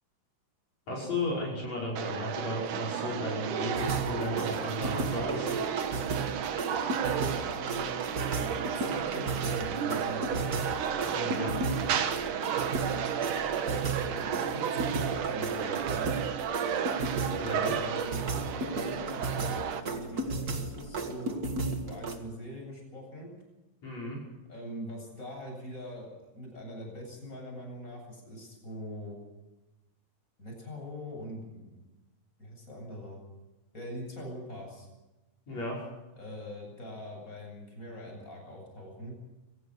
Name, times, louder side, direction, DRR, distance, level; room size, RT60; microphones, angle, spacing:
voice 1, 0.9-5.5 11.1-11.5 17.3-17.7 23.8-24.2 35.5-35.8, left 1 dB, 50° left, -2 dB, 6.8 m, -34 dB
sound 1, 2.0-19.8, right 8 dB, 70° right, 2.9 m, -33 dB
sound 2, 3.8-22.2, right 3 dB, 35° right, 2.0 m, -35 dB
voice 2, 7.6-10.5 12.6-13.3 14.1-16.2 17.2-19.6 19.9-21.4 21.9-23.3 24.5-29.2 30.4-31.7 32.4-33.2 33.7-34.9 36.1-39.2, equal, 20° left, 1 dB, 8.4 m, -43 dB
25.0 x 17.5 x 6.5 m, 1.0 s
omnidirectional pair, 3.9 m